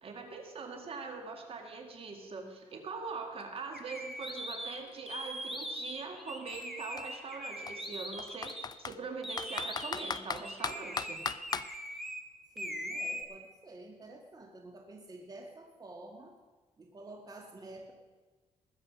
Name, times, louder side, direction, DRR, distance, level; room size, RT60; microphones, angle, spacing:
voice 1, 0.0-11.2, right 4 dB, 50° right, 4 dB, 2.2 m, -42 dB
Computer keyboard, 3.4-3.5 3.8-5.7 6.5-6.7 7.0-7.1 7.7-9.0 9.4-11.7, left 6 dB, 35° left, 0.5 m, -37 dB
sound 1, 3.7-8.7 9.2-12.2 12.6-13.2, equal, ahead, 1.7 m, -41 dB
voice 2, 12.6-16.4 16.8-17.9, right 2 dB, 30° right, 2 dB, 1.9 m, -49 dB
20.0 x 7.7 x 6.2 m, 1.3 s
cardioid pair, 100°, 12 cm